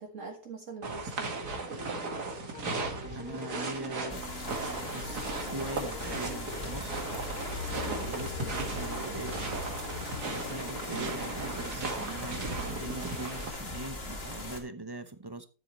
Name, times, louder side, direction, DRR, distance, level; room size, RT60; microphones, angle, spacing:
voice 1, 0.0-2.2 7.8-8.1 10.9-11.1, right 4 dB, 55° right, 1.7 m, -44 dB
sound 1, 0.8-13.5, right 3 dB, 90° right, 2.6 m, -37 dB
sound 2, 1.9-11.8, left 4 dB, 70° left, 3.2 m, -47 dB
voice 2, 2.8-4.2 4.9-5.2 5.5-7.0 7.7-15.5, right 2 dB, 20° right, 0.8 m, -42 dB
sound 3, 4.1-14.6, left 2 dB, 40° left, 2.4 m, -39 dB
13.5 x 7.7 x 3.1 m
omnidirectional pair, 1.7 m